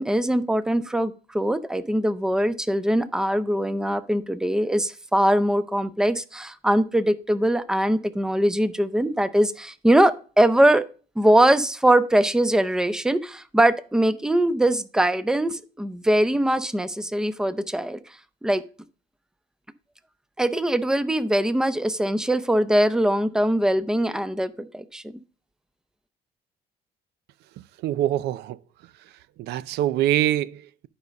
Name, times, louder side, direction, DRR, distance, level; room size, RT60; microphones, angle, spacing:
voice 1, 0.0-10.8 11.2-18.0 18.4-18.7 20.4-25.2, right 1 dB, 5° right, 0.6 m, -22 dB
voice 2, 27.6-28.6 29.4-30.9, right 12 dB, 80° right, 0.5 m, -25 dB
11.0 x 5.2 x 5.2 m
cardioid pair, 110°, 17 cm